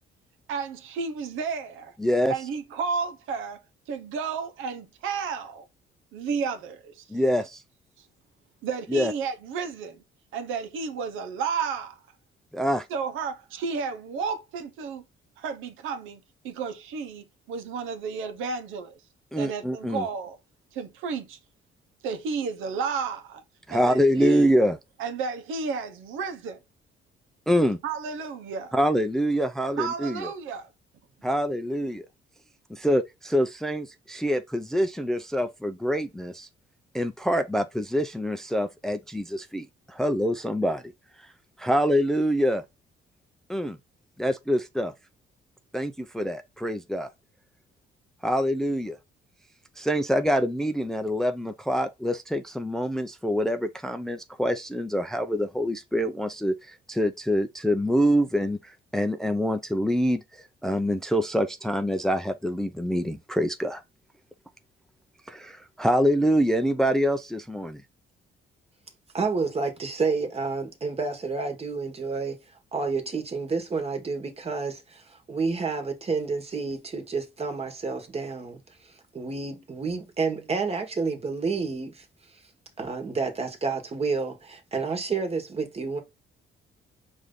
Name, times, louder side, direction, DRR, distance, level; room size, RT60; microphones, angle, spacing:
voice 1, 0.5-1.9 2.3-3.6 3.9-5.7 6.1-7.0 8.0-8.1 8.6-10.0 10.3-12.0 12.9-15.0 15.4-19.0 19.4-20.4 20.7-21.4 22.0-23.4 23.7-24.5 25.0-26.6 27.8-28.7 29.8-30.7, right 5 dB, 90° right, 0.8 m, -32 dB
voice 2, 2.0-2.3 7.1-7.6 8.9-9.1 12.5-12.9 19.3-20.0 23.7-24.8 27.5-27.8 28.7-30.3 31.2-32.1 32.7-36.5 36.9-40.8 41.6-42.6 43.5-43.8 44.2-44.9 45.7-47.1 48.2-49.0 49.8-60.2 60.6-63.8 65.3-67.8, equal, ahead, 0.4 m, -25 dB
voice 3, 69.1-72.4 72.7-82.0 82.8-86.0, right 4 dB, 30° right, 1.4 m, -30 dB
5.0 x 2.6 x 3.7 m
cardioid pair, 90°, 20 cm